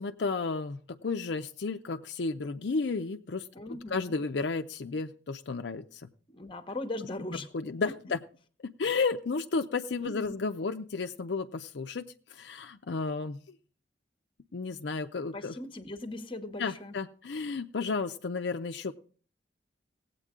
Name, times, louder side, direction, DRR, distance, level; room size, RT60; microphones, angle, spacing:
voice 1, 0.0-3.5 3.9-6.1 7.5-8.2 8.6-13.4 14.5-15.5 16.6-18.9, left 4 dB, 70° left, 6 dB, 0.5 m, -32 dB
voice 2, 3.5-4.2 6.3-7.5 10.0-10.4 15.3-16.9, left 2 dB, 30° left, 10 dB, 1.0 m, -39 dB
18.0 x 8.3 x 3.7 m, 0.42 s
head